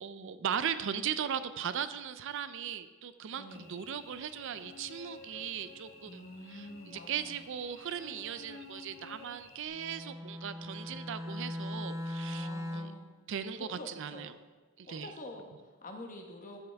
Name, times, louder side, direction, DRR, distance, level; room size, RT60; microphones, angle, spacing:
voice 1, 0.0-6.2 6.5-6.7 7.1-12.9 13.3-14.3 14.8-15.1, right 8 dB, 65° right, 12 dB, 0.4 m, -38 dB
voice 2, 3.4-3.8 6.0-7.4 12.2-13.1 13.6-14.3 14.8-16.6, left 1 dB, 40° left, 2 dB, 1.2 m, -47 dB
Cricket / Buzz, 3.5-9.7, left 3 dB, 75° left, 1.7 m, -52 dB
Bowed string instrument, 9.7-13.1, left 1 dB, 15° right, 0.6 m, -39 dB
14.5 x 5.6 x 3.4 m, 1.3 s
head